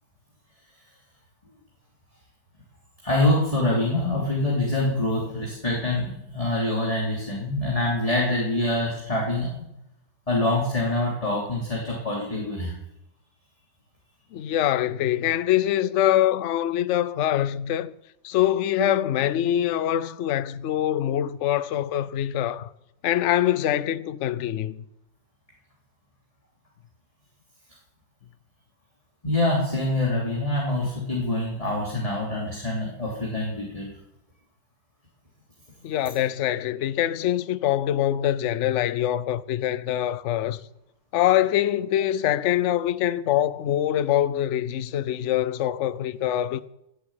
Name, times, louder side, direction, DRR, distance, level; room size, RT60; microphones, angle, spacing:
voice 1, 3.0-9.5 10.3-12.7 29.2-33.9, left 1 dB, 20° left, 3.3 m, -25 dB
voice 2, 14.3-17.9 18.2-22.7 23.0-24.8 35.8-40.6 41.1-46.6, left 12 dB, 60° left, 0.8 m, -24 dB
15.5 x 8.3 x 8.8 m
omnidirectional pair, 1.9 m